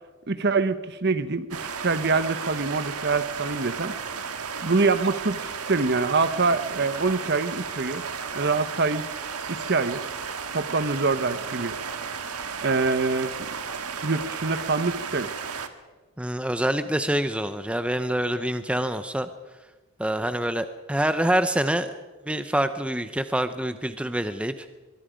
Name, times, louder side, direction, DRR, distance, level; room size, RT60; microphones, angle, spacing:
voice 1, 0.3-3.9 4.6-8.0 8.3-9.0 9.5-10.0 10.5-11.8 12.6-13.5 14.0-15.3, right 3 dB, 50° right, 12 dB, 1.0 m, -25 dB
sound 1, 1.5-15.7, right 6 dB, 85° right, 1.5 m, -34 dB
voice 2, 16.2-19.3 20.0-21.9 22.3-24.5, right 1 dB, 5° right, 10 dB, 0.6 m, -26 dB
24.0 x 22.5 x 5.2 m, 1.2 s
head